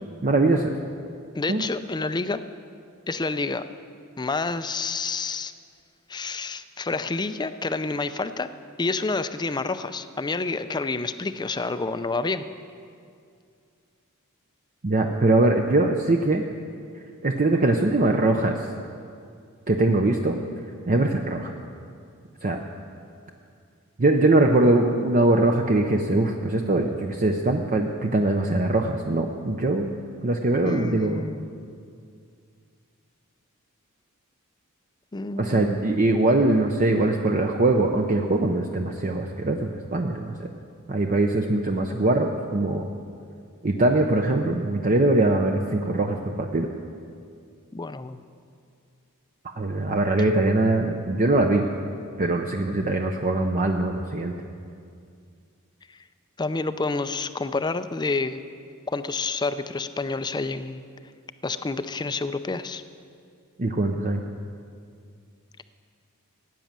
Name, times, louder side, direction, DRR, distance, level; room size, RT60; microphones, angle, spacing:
voice 1, 0.2-0.7 1.5-1.6 14.8-16.4 17.2-18.5 19.7-20.4 20.9-21.5 22.4-22.6 24.0-30.0 30.2-31.3 35.4-40.5 40.9-42.9 43.6-46.7 49.6-51.6 52.2-54.3 63.6-64.2, right 2 dB, 40° right, 3 dB, 0.7 m, -22 dB
voice 2, 1.3-2.4 3.1-3.7 4.2-5.5 6.1-8.5 8.8-12.4 30.6-31.5 35.1-35.8 47.7-48.2 55.9-56.0 56.4-58.4 58.9-60.9 61.4-62.8, left 3 dB, 20° left, 11 dB, 0.5 m, -28 dB
15.5 x 9.4 x 7.4 m, 2.3 s
head